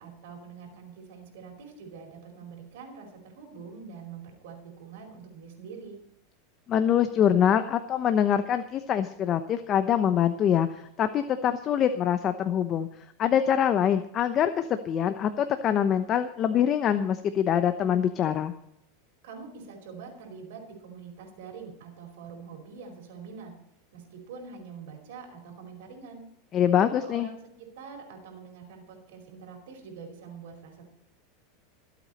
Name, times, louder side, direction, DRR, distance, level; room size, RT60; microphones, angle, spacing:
voice 1, 0.0-6.0 19.2-23.5 23.9-26.2 26.7-30.9, right 5 dB, 75° right, 2 dB, 4.8 m, -45 dB
voice 2, 6.7-12.9 13.2-18.5 26.5-27.3, left 9 dB, 35° left, 9 dB, 0.9 m, -24 dB
24.0 x 8.4 x 4.3 m, 0.75 s
supercardioid pair, 130°, 0 cm